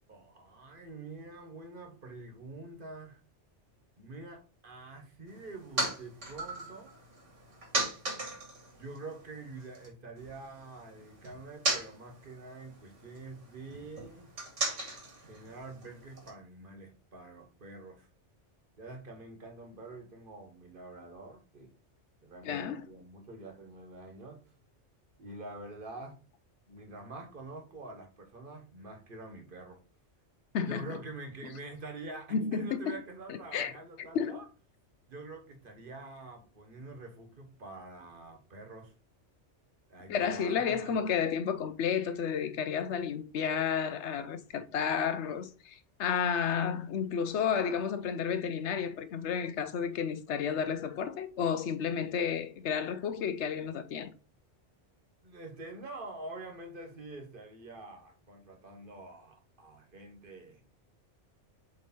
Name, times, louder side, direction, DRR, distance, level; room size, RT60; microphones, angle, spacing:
voice 1, 0.1-3.2 4.0-7.0 8.7-14.3 15.3-18.1 18.8-21.7 22.2-24.4 25.2-26.2 26.7-29.8 30.7-34.5 35.1-38.9 39.9-41.1 55.2-60.6, right 2 dB, 45° right, 1.5 m, -46 dB
sound 1, 5.3-9.9 10.2-16.3, right 2 dB, 90° right, 2.4 m, -38 dB
voice 2, 22.4-22.9 30.5-31.0 32.3-33.0 33.3-33.7 34.1-34.4 40.1-54.1, left 7 dB, 70° left, 1.0 m, -32 dB
7.8 x 3.3 x 4.3 m
omnidirectional pair, 1.2 m